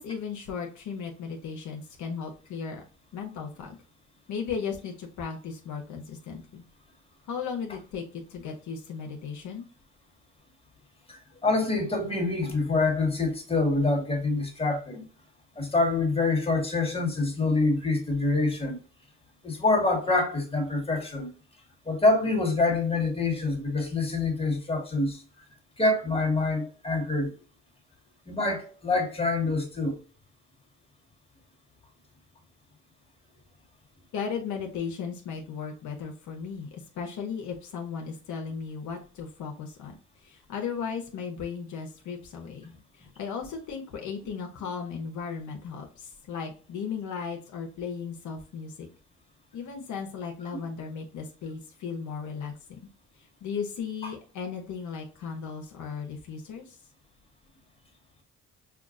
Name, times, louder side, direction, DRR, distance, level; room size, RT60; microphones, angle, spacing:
voice 1, 0.0-2.8 3.1-3.8 4.3-6.6 7.3-9.6 34.1-40.0 40.2-48.9 49.5-52.8 53.2-56.8, left 6 dB, 75° left, 0.9 m, -36 dB
voice 2, 11.1-15.1 15.6-18.8 19.4-21.3 21.9-25.2 25.8-27.3 28.3-30.0, left 3 dB, 20° left, 1.6 m, -26 dB
5.7 x 2.3 x 2.5 m
cardioid pair, 90°, 30 cm